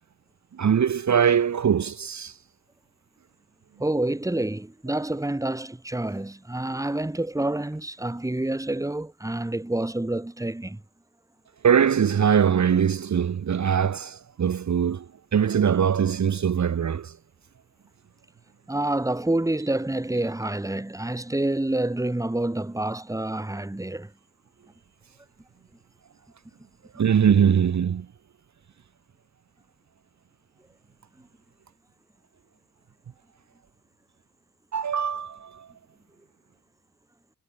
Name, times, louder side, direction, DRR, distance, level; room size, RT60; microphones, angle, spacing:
voice 1, 0.6-2.3 11.6-15.1 15.3-17.1 27.0-28.1 34.7-35.7, right 8 dB, 40° right, 1.5 m, -22 dB
voice 2, 3.8-10.8 18.7-24.1, right 1 dB, 10° right, 2.2 m, -28 dB
hypercardioid pair, 40°, 42 cm